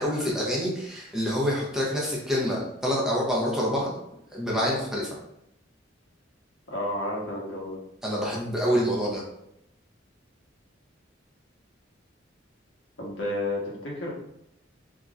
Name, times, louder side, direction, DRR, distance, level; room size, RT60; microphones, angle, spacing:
voice 1, 0.0-3.9 4.3-5.1 8.0-9.2, equal, 5° right, -5 dB, 0.8 m, -26 dB
voice 2, 6.7-7.8 13.0-14.1, left 1 dB, 70° left, -4 dB, 1.2 m, -31 dB
3.6 x 2.8 x 2.5 m, 0.79 s
head